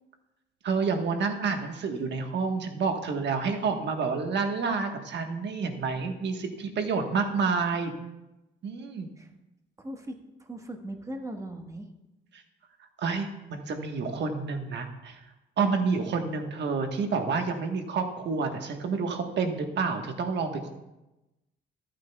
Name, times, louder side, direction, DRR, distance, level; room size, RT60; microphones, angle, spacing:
voice 1, 0.6-7.9 8.6-9.1 12.3-12.4 13.0-15.2 15.6-20.7, right 4 dB, 60° right, 5 dB, 1.3 m, -29 dB
voice 2, 9.8-11.9 15.1-15.2, right 1 dB, 15° right, 4 dB, 1.3 m, -39 dB
14.0 x 9.0 x 2.3 m, 0.98 s
cardioid pair, 90°, 20 cm